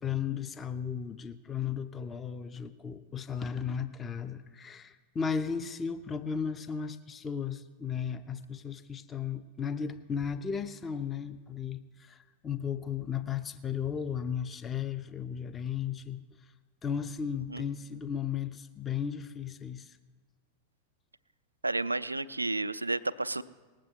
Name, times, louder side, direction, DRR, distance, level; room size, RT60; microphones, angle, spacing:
voice 1, 0.0-16.2 16.8-20.0, left 7 dB, 20° left, 9 dB, 0.6 m, -35 dB
voice 2, 21.6-23.4, right 2 dB, 80° right, 14 dB, 0.4 m, -31 dB
19.5 x 7.6 x 4.6 m, 1.3 s
figure-of-eight pair, 90°, 0 cm